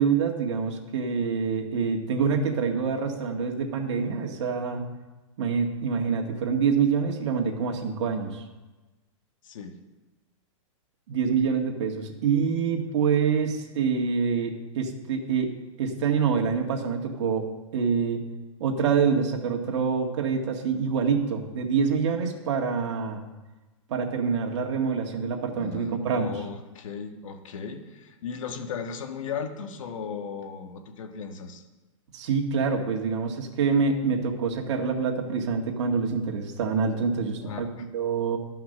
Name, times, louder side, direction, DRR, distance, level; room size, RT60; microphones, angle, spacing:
voice 1, 0.0-4.8 5.4-8.4 11.1-17.4 17.7-18.2 18.6-23.2 23.9-26.3 32.1-37.7 37.9-38.4, right 6 dB, 60° right, 1 dB, 1.9 m, -26 dB
voice 2, 25.6-31.6 37.4-37.8, left 6 dB, 70° left, 5 dB, 1.6 m, -36 dB
12.5 x 5.8 x 6.7 m, 1.2 s
hypercardioid pair, 145°, 17 cm